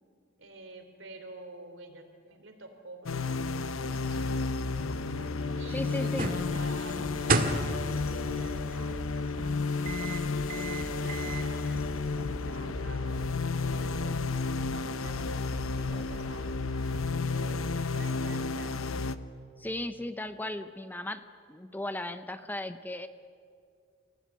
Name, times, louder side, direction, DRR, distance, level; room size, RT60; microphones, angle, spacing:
voice 1, 0.4-4.9 5.5-7.6 7.9-14.2 14.7-18.8, right 2 dB, 65° right, 6 dB, 3.4 m, -49 dB
sound 1, 3.1-19.2, left 4 dB, 90° left, 0.9 m, -32 dB
sound 2, 4.7-11.5, right 3 dB, 45° right, 1.8 m, -35 dB
voice 2, 5.7-6.3 19.6-23.1, left 1 dB, 10° left, 10 dB, 0.6 m, -36 dB
sound 3, 6.4-17.4, equal, 25° right, 1.1 m, -45 dB
25.5 x 16.5 x 9.5 m, 2.3 s
head